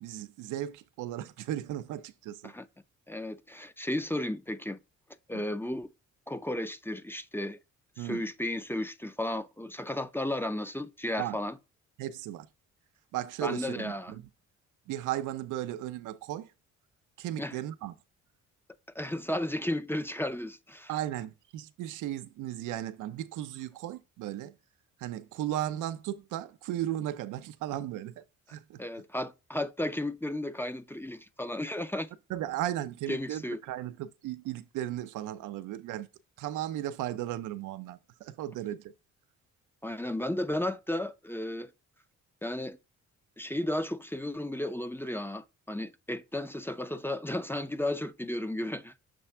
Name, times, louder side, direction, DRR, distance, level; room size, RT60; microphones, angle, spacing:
voice 1, 0.0-2.5 5.3-5.4 8.0-8.2 11.2-11.4 12.0-12.5 13.1-14.3 14.9-16.5 17.2-17.9 20.9-24.6 25.0-28.2 28.5-28.8 32.3-36.1 36.4-38.9, right 13 dB, 90° right, 0.6 m, -36 dB
voice 2, 3.1-4.8 5.3-5.9 6.3-7.6 8.0-11.5 13.4-14.1 17.4-17.5 19.0-20.9 28.8-32.1 33.1-33.6 39.8-41.7 42.4-42.8 43.4-48.9, left 1 dB, 5° left, 0.5 m, -34 dB
6.6 x 3.3 x 4.3 m
cardioid pair, 90°, 30 cm